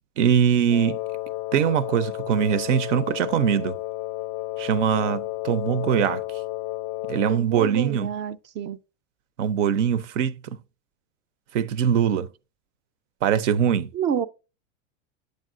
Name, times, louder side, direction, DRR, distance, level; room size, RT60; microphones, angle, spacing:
voice 1, 0.2-1.0 1.5-3.8 4.6-6.2 7.1-8.2 9.4-10.4 11.5-12.3 13.2-13.9, right 8 dB, 85° right, 0.6 m, -22 dB
Wind instrument woodwind instrument, 0.7-7.5, left 18 dB, 45° left, 0.4 m, -32 dB
voice 2, 7.3-8.8 13.9-14.3, right 8 dB, 30° right, 0.4 m, -28 dB
8.7 x 6.5 x 2.5 m
hypercardioid pair, 110°, 36 cm